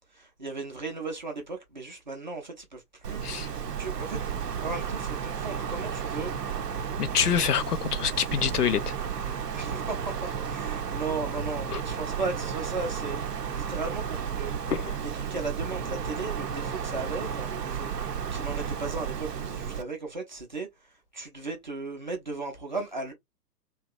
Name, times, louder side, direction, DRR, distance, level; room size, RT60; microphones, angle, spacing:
voice 1, 0.1-3.2 3.8-4.2 4.6-6.3 9.5-14.5 14.9-23.1, right 3 dB, 30° right, 0.5 m, -36 dB
Wind, 3.0-19.8, right 7 dB, 70° right, 0.7 m, -33 dB
voice 2, 7.0-8.9 11.7-11.8 14.7-15.0, left 8 dB, 70° left, 0.6 m, -26 dB
2.8 x 2.2 x 2.3 m
figure-of-eight pair, 125°, 49 cm